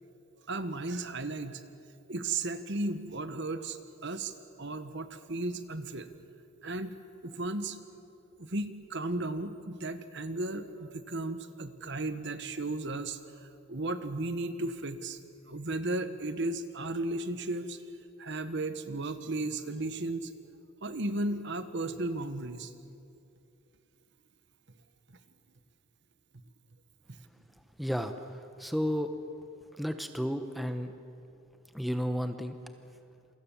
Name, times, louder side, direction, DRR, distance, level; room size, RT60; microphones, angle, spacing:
voice 1, 0.5-1.6 2.1-6.1 6.6-6.9 7.2-7.8 8.4-15.2 15.5-17.8 18.2-20.3 20.8-22.7, right 2 dB, 55° right, 10 dB, 1.3 m, -35 dB
voice 2, 27.8-29.1 29.7-31.0 31.7-32.6, equal, ahead, 7 dB, 0.9 m, -32 dB
28.0 x 24.0 x 7.3 m, 2.6 s
head